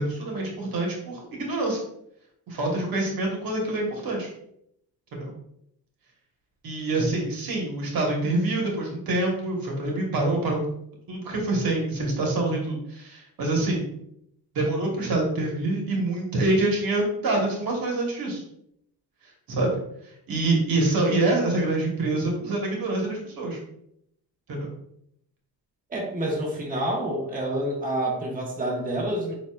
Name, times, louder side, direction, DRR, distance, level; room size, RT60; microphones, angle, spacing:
voice 1, 0.0-1.8 2.5-4.3 5.1-5.3 6.6-10.6 11.1-13.9 14.5-18.4 19.5-19.8 20.3-23.6 24.5-24.7, right 2 dB, 60° right, 0 dB, 1.4 m, -26 dB
voice 2, 25.9-29.4, right 1 dB, 20° right, -2 dB, 1.3 m, -28 dB
7.1 x 2.7 x 2.4 m, 0.74 s
cardioid pair, 90°, 39 cm